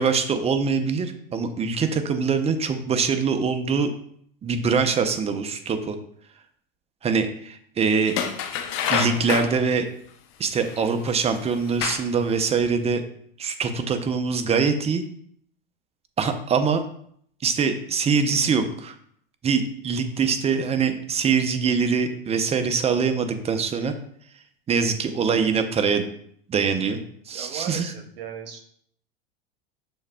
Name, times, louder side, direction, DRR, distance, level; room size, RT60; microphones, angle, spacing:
voice 1, 0.0-3.9 4.4-6.0 7.0-8.1 8.9-9.9 10.4-13.0 13.4-15.0 16.2-16.8 17.4-18.9 19.4-23.9 24.7-26.1 26.5-27.0 27.3-27.9, right 5 dB, 20° right, 8 dB, 0.5 m, -23 dB
sound 1, 8.1-9.6 10.7-10.8 11.5-12.2 12.6-12.7, left 8 dB, 45° left, 0.6 m, -27 dB
voice 2, 27.3-28.6, right 7 dB, 75° right, 5 dB, 0.8 m, -37 dB
6.3 x 3.4 x 2.2 m, 0.65 s
hypercardioid pair, 90°, 29 cm